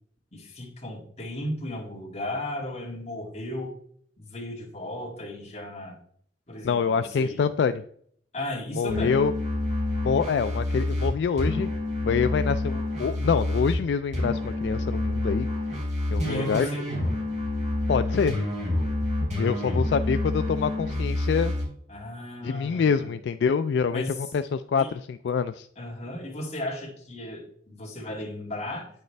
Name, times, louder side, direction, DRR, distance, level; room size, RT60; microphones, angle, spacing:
voice 1, 0.3-3.7 4.2-6.0 6.5-7.4 8.3-9.2 16.2-16.9 19.5-20.1 21.9-23.1 23.9-24.2 24.8-24.9 25.8-28.9, left 1 dB, 40° left, -1 dB, 2.2 m, -35 dB
voice 2, 6.6-7.8 8.8-9.3 10.0-11.7 12.0-15.5 16.1-16.7 17.9-18.4 19.4-21.5 22.4-25.7, left 6 dB, 70° left, 11 dB, 0.3 m, -26 dB
sound 1, 8.9-13.8 14.1-21.6, left 1 dB, 45° right, 3.8 m, -28 dB
9.4 x 6.5 x 3.3 m, 0.62 s
head